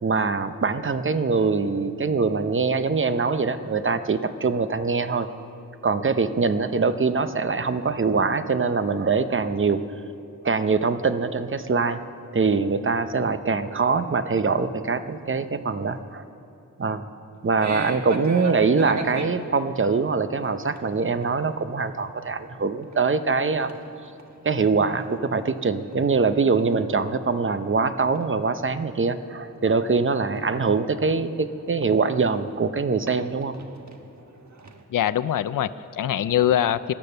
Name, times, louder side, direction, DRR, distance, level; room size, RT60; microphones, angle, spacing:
voice 1, 0.0-5.3 5.8-9.8 10.4-12.0 12.3-16.2 16.8-17.0 17.4-23.8 24.4-33.5, right 4 dB, 40° right, 11 dB, 0.7 m, -23 dB
sound 1, 17.6-19.3 20.4-20.8 21.1-21.3 21.8-21.9 22.3-22.4 22.7-23.4 23.7-25.0 25.3-28.7 29.0-32.4 32.8-34.8, right 4 dB, 60° right, 1.3 m, -37 dB
voice 2, 34.9-36.9, left 10 dB, 80° left, 13 dB, 0.5 m, -23 dB
17.5 x 11.5 x 6.8 m, 2.8 s
wide cardioid pair, 110°, 32 cm